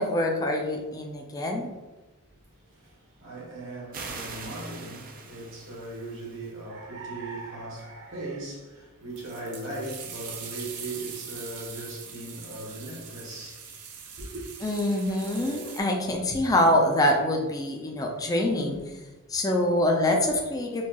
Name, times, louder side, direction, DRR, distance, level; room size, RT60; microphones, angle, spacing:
voice 1, 0.0-1.7 14.6-18.8 19.3-20.9, left 1 dB, 15° left, 0.4 m, -25 dB
voice 2, 2.7-13.7 14.2-14.4, right 2 dB, 60° right, 1.2 m, -38 dB
sound 1, 3.9-6.5, right 4 dB, 40° right, 0.4 m, -42 dB
sound 2, 9.2-15.8, right 6 dB, 90° right, 0.6 m, -42 dB
4.5 x 2.4 x 2.9 m
head